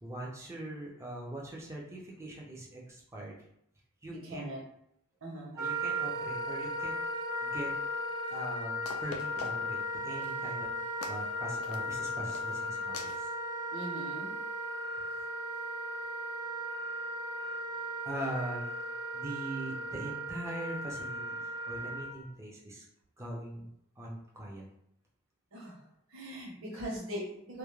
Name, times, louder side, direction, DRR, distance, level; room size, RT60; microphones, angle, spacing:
voice 1, 0.0-3.4 4.0-4.5 5.5-6.9 7.4-7.7 8.3-10.7 11.1-13.3 18.0-18.6 19.1-21.4 21.7-22.8 23.2-23.7 24.0-24.6, right 1 dB, 15° right, -3 dB, 0.4 m, -41 dB
voice 2, 4.1-4.6 5.2-5.5 13.7-14.3 25.5-25.8 26.1-27.6, equal, 65° right, -4 dB, 0.9 m, -40 dB
Wind instrument woodwind instrument, 5.6-22.1, equal, 85° right, 0.6 m, -36 dB
sound 1, 8.3-8.4 8.9-9.8 10.2-10.5 11.0-11.3 11.6-12.0 12.3-12.6 12.9-13.2, left 3 dB, 80° left, 0.4 m, -43 dB
2.3 x 2.0 x 3.0 m, 0.76 s
head